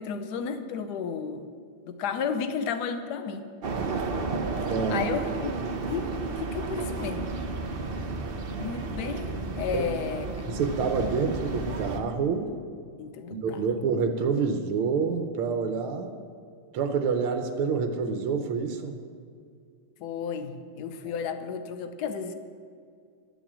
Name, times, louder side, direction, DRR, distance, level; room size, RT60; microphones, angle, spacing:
voice 1, 0.0-1.5 1.9-3.5 4.9-5.5 5.8-7.3 8.6-10.3 13.0-13.6 20.0-22.3, left 6 dB, 60° left, 8 dB, 1.2 m, -32 dB
sound 1, 3.6-12.0, right 3 dB, 65° right, 0.5 m, -32 dB
voice 2, 4.7-5.1 9.7-9.8 10.5-12.5 13.3-16.1 16.7-19.0 21.1-21.2, right 5 dB, 85° right, 5 dB, 1.7 m, -27 dB
12.0 x 7.3 x 7.4 m, 2.2 s
omnidirectional pair, 2.3 m